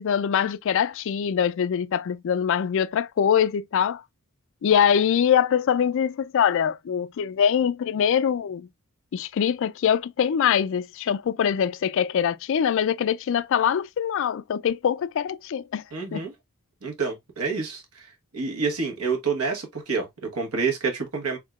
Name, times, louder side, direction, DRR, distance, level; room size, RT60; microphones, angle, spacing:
voice 1, 0.0-4.0 4.6-8.7 9.1-15.8 16.1-16.2, left 8 dB, 60° left, 0.3 m, -23 dB
voice 2, 15.9-16.3 16.8-18.1 18.3-21.4, right 4 dB, 75° right, 1.3 m, -28 dB
3.6 x 3.6 x 2.3 m
head